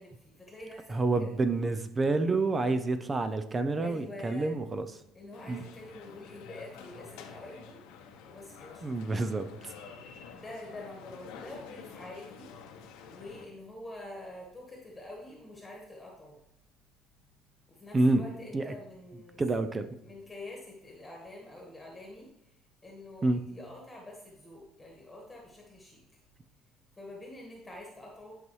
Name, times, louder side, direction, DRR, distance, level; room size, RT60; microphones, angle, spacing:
voice 1, 0.0-1.4 3.8-4.5 5.1-7.8 8.2-8.9 10.3-16.4 17.7-26.0 26.9-28.4, left 1 dB, 10° left, -1 dB, 1.5 m, -47 dB
voice 2, 0.9-4.9 5.5-5.6 8.8-9.7 17.9-18.2 18.5-18.7 19.4-19.9 23.2-23.4, right 3 dB, 20° right, 10 dB, 0.5 m, -28 dB
sound 1, 5.3-13.5, left 6 dB, 90° left, 1.0 m, -49 dB
11.0 x 5.4 x 3.1 m, 0.78 s
cardioid pair, 135°, 0 cm